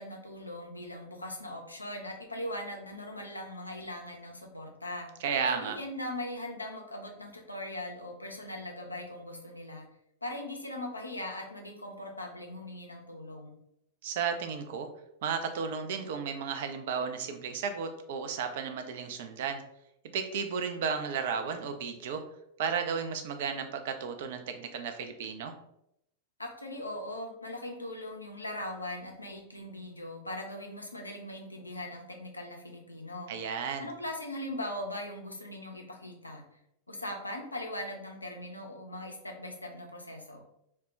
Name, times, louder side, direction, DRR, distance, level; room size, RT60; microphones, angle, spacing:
voice 1, 0.0-5.1 5.5-9.9 10.2-13.6 26.4-33.3 33.8-36.4 36.9-40.4, left 1 dB, 85° left, 2 dB, 0.4 m, -40 dB
voice 2, 5.2-5.8 14.0-14.9 15.2-19.6 20.1-22.2 22.6-25.5 33.3-33.9, right 6 dB, 55° right, 6 dB, 0.3 m, -33 dB
2.1 x 2.1 x 3.6 m, 0.78 s
figure-of-eight pair, 90°, 0 cm